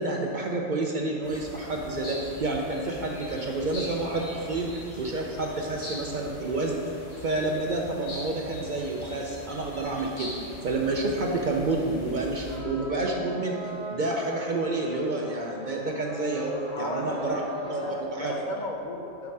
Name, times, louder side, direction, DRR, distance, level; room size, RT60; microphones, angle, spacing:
voice 1, 0.0-6.8 7.2-13.5 13.9-17.4 17.7-17.8 18.1-18.3, right 2 dB, 55° right, 0 dB, 0.6 m, -29 dB
sound 1, 1.2-12.6, left 1 dB, 75° left, 2.0 m, -42 dB
sound 2, 12.4-17.9, equal, 30° right, 1.7 m, -40 dB
voice 2, 16.7-19.3, left 2 dB, 55° left, 1 dB, 0.5 m, -35 dB
6.9 x 5.0 x 4.7 m, 2.7 s
omnidirectional pair, 1.3 m